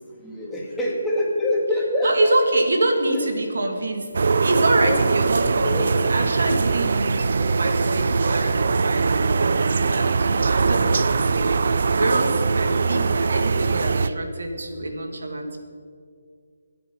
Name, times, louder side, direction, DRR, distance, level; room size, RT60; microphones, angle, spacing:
voice 1, 0.2-2.3 3.1-3.2 4.8-5.0 5.6-5.9, left 1 dB, 5° left, -5 dB, 2.4 m, -25 dB
voice 2, 2.0-15.6, right 2 dB, 75° right, 4 dB, 2.4 m, -26 dB
sound 1, 4.1-14.1, right 4 dB, 60° right, 0.6 m, -21 dB
23.5 x 8.7 x 5.6 m, 2.2 s
hypercardioid pair, 165°, 0 cm